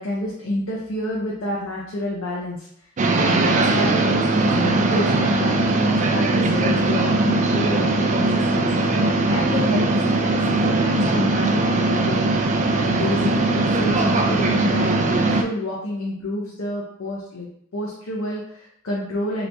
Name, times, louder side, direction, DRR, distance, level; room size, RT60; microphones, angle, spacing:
voice 1, 0.0-2.7 3.2-8.7 9.3-12.2 12.7-17.5 17.7-19.5, left 1 dB, 70° left, -4 dB, 0.7 m, -28 dB
sound 1, 3.0-15.4, right 2 dB, 35° right, 0.3 m, -20 dB
3.3 x 2.9 x 2.6 m, 0.69 s
head